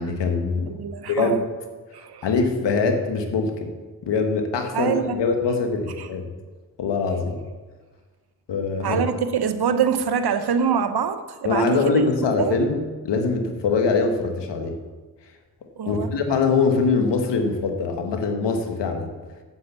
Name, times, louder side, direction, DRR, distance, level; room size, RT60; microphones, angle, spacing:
voice 1, 0.0-0.7 1.1-1.4 2.2-3.7 4.0-6.2 6.8-7.4 8.5-9.0 11.4-14.8 15.9-19.1, left 4 dB, 80° left, 5 dB, 1.5 m, -23 dB
voice 2, 0.7-1.4 1.9-2.3 4.7-5.2 6.0-6.1 8.8-11.8 12.4-12.6 15.8-16.1, right 7 dB, 65° right, 10 dB, 1.0 m, -24 dB
8.6 x 8.0 x 7.0 m, 1.3 s
supercardioid pair, 50°, 42 cm